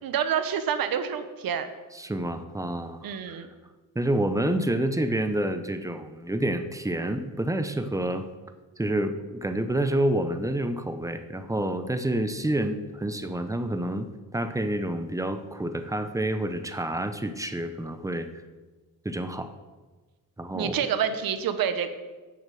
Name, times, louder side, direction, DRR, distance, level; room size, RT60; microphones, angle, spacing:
voice 1, 0.0-1.7 3.0-3.5 20.5-21.9, right 8 dB, 90° right, 10 dB, 1.1 m, -27 dB
voice 2, 1.9-3.4 3.9-8.3 8.8-18.3 19.0-19.5 20.4-20.8, right 1 dB, 10° right, 9 dB, 0.7 m, -28 dB
8.8 x 7.4 x 7.6 m, 1.3 s
wide cardioid pair, 150°, 34 cm